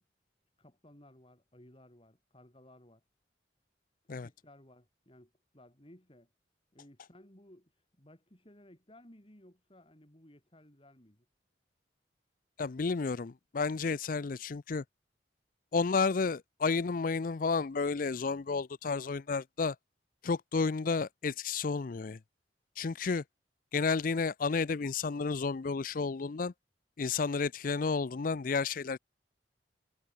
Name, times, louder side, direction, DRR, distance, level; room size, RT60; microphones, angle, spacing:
voice 1, 0.6-3.0 4.0-6.3 6.7-7.7 8.0-11.3, left 1 dB, 30° left, 3.6 m, -58 dB
voice 2, 12.6-14.8 15.7-19.8 20.2-22.2 22.8-23.2 23.7-26.5 27.0-29.0, left 4 dB, 50° left, 0.5 m, -31 dB
head